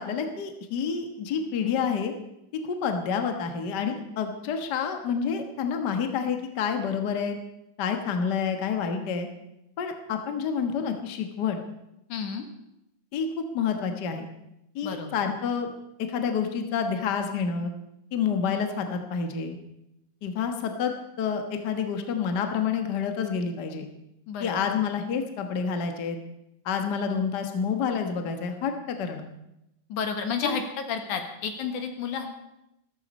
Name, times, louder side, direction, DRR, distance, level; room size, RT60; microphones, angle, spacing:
voice 1, 0.0-2.1 2.6-7.4 7.8-9.3 9.8-11.6 13.1-13.3 13.5-14.3 14.7-15.7 16.0-17.7 18.1-19.6 20.2-20.9 21.2-23.9 24.4-26.2 26.6-29.2, left 6 dB, 45° left, 5 dB, 1.4 m, -28 dB
voice 2, 12.1-12.5 14.8-15.2 24.3-24.6 29.9-32.3, left 6 dB, 75° left, 6 dB, 2.9 m, -31 dB
14.5 x 14.0 x 5.4 m, 0.86 s
omnidirectional pair, 3.5 m